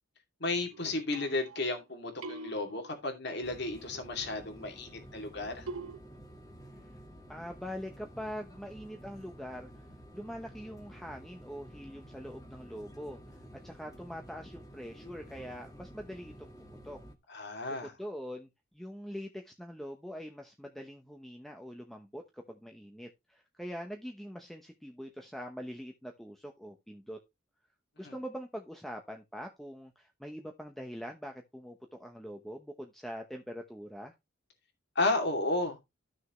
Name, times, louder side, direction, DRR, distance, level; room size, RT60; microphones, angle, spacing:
voice 1, 0.4-5.7 17.3-17.9 28.0-28.1 34.9-35.8, left 2 dB, 55° left, 2.5 m, -33 dB
sound 1, 0.7-1.8 2.2-3.4 5.7-6.0, right 3 dB, 85° right, 1.0 m, -44 dB
sound 2, 3.4-17.1, equal, 15° left, 1.6 m, -51 dB
voice 2, 7.3-9.9 10.1-17.0 17.6-18.5 18.7-27.2 28.0-34.1, equal, ahead, 0.9 m, -43 dB
13.5 x 6.4 x 3.1 m
head